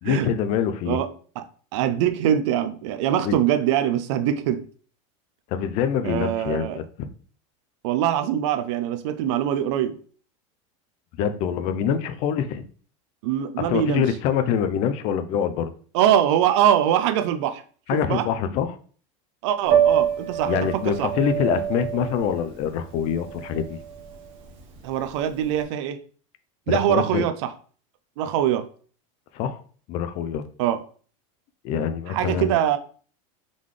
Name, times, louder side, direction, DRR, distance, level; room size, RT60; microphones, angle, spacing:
voice 1, 0.0-1.0 3.2-3.4 5.5-6.8 11.2-12.6 13.7-15.7 17.9-18.8 20.5-23.8 26.7-27.2 29.3-29.6 29.9-30.4 31.6-32.6, left 8 dB, 40° left, 0.4 m, -25 dB
voice 2, 1.7-4.6 6.0-6.8 7.8-9.9 13.2-14.0 15.9-17.6 17.9-18.3 19.4-21.1 24.8-26.0 26.7-27.5 28.2-28.7 30.6-30.8 32.1-32.8, right 10 dB, 60° right, 0.5 m, -23 dB
Piano, 19.6-25.6, right 9 dB, 35° right, 0.8 m, -26 dB
3.8 x 3.6 x 3.2 m
supercardioid pair, 165°, 17 cm